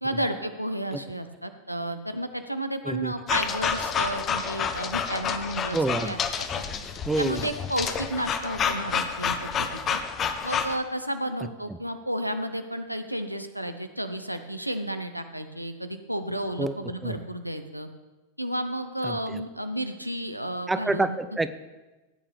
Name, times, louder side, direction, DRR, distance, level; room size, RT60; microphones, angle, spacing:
voice 1, 0.0-6.2 6.5-6.6 7.2-10.0 10.4-17.9 18.4-21.2, right 1 dB, 90° right, 8 dB, 0.7 m, -32 dB
sound 1, 3.3-10.8, left 6 dB, 25° left, 0.8 m, -29 dB
voice 2, 5.7-6.1 7.1-7.5 11.7-11.8 16.6-16.8 17.0-17.2 19.0-19.4 20.7-21.5, right 2 dB, 10° right, 12 dB, 0.5 m, -27 dB
16.5 x 8.6 x 3.4 m, 1.2 s
figure-of-eight pair, 90°, 0 cm